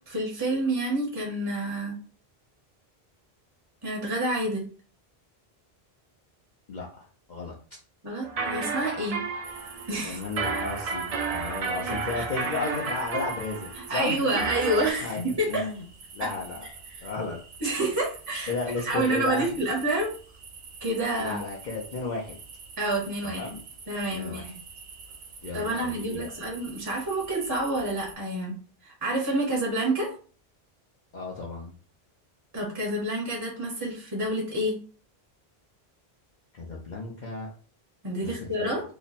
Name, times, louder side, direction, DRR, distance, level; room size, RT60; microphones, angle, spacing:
voice 1, 0.1-2.0 3.8-4.7 8.0-9.2 9.9-10.2 12.1-12.2 13.8-15.7 16.2-16.3 16.9-17.1 17.6-18.5 18.8-20.1 20.8-21.4 22.8-23.5 23.9-24.6 25.5-28.5 28.8-30.1 32.5-34.8 38.0-38.8, right 1 dB, 25° right, -3 dB, 0.9 m, -28 dB
voice 2, 6.7-7.5 10.0-14.5 15.0-15.8 16.1-16.6 17.0-17.4 18.5-19.5 21.2-22.4 23.2-23.6 24.1-24.5 25.4-26.3 31.1-31.7 36.5-37.5 38.2-38.7, left 3 dB, 50° left, -3 dB, 0.7 m, -34 dB
sound 1, 8.2-14.9, right 4 dB, 50° right, 0.4 m, -32 dB
sound 2, 9.4-28.1, right 4 dB, 75° right, 0.9 m, -46 dB
2.9 x 2.1 x 4.0 m, 0.40 s
omnidirectional pair, 1.1 m